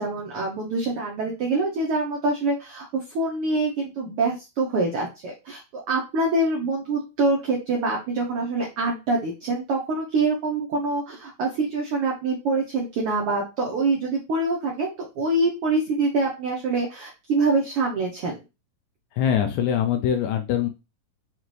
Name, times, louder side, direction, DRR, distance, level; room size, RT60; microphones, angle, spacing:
voice 1, 0.0-18.4, right 3 dB, 80° right, -1 dB, 1.2 m, -25 dB
voice 2, 19.1-20.7, left 9 dB, 80° left, 5 dB, 1.7 m, -23 dB
5.6 x 2.5 x 3.1 m, 0.27 s
omnidirectional pair, 3.7 m